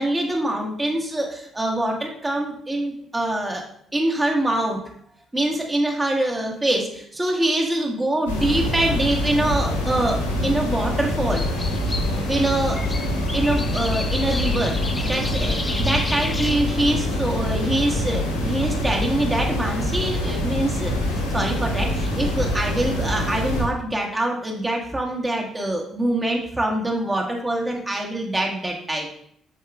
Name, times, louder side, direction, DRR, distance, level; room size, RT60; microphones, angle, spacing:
voice 1, 0.0-3.6 3.9-4.8 5.3-11.4 12.3-12.8 13.3-14.8 15.0-29.1, right 1 dB, 20° right, 0 dB, 1.6 m, -24 dB
sound 1, 8.3-23.6, left 1 dB, 80° left, 1.2 m, -25 dB
sound 2, 11.3-16.5, left 2 dB, 15° left, 0.9 m, -33 dB
8.1 x 6.8 x 2.4 m, 0.68 s
figure-of-eight pair, 45°, 0 cm